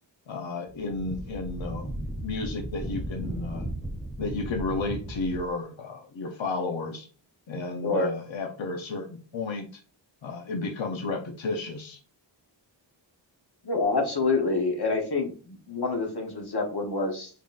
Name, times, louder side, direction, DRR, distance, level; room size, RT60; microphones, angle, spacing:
voice 1, 0.3-3.6 4.2-7.1 7.5-9.8 10.2-12.0, left 3 dB, 90° left, 3 dB, 0.8 m, -32 dB
Wind, 0.7-5.5, right 1 dB, ahead, 1.2 m, -35 dB
voice 2, 13.6-17.3, left 3 dB, 60° left, 2 dB, 1.0 m, -27 dB
3.8 x 3.7 x 2.4 m, 0.37 s
wide cardioid pair, 65°, 45 cm